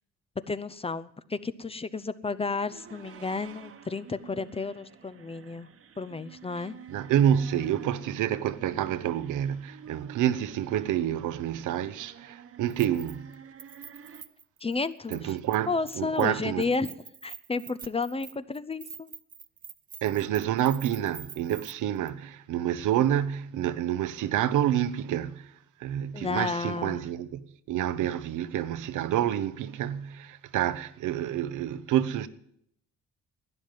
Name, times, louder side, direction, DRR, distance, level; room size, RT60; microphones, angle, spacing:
voice 1, 0.5-5.7 6.0-6.7 14.6-15.4 15.7-16.9 17.2-19.1 26.1-27.0, left 4 dB, 20° left, 0.6 m, -32 dB
sound 1, 2.4-14.2, right 8 dB, 50° right, 1.2 m, -50 dB
voice 2, 6.9-13.3 15.1-16.7 20.0-25.5 25.8-32.3, right 11 dB, 80° right, 0.9 m, -28 dB
Keys jangling, 12.7-13.3 13.6-15.6 15.9-16.3 16.6-21.7 22.1-22.2, right 6 dB, 30° right, 0.5 m, -46 dB
12.0 x 9.4 x 9.1 m
cardioid pair, 90°, 30 cm